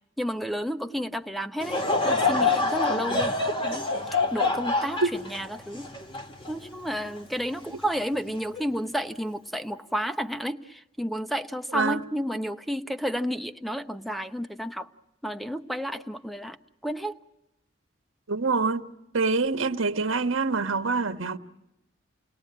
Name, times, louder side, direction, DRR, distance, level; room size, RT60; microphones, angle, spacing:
voice 1, 0.2-3.4 3.6-3.9 4.3-5.9 6.5-14.9 15.2-16.6 16.8-17.2, equal, ahead, 0.9 m, -31 dB
Laughter / Crowd, 1.6-7.1 7.6-7.7 8.5-8.8, left 3 dB, 25° left, 1.9 m, -26 dB
voice 2, 2.9-3.2 5.0-5.1 11.7-12.0 18.3-18.9 19.1-21.4, right 4 dB, 85° right, 1.3 m, -26 dB
29.5 x 20.0 x 8.7 m
head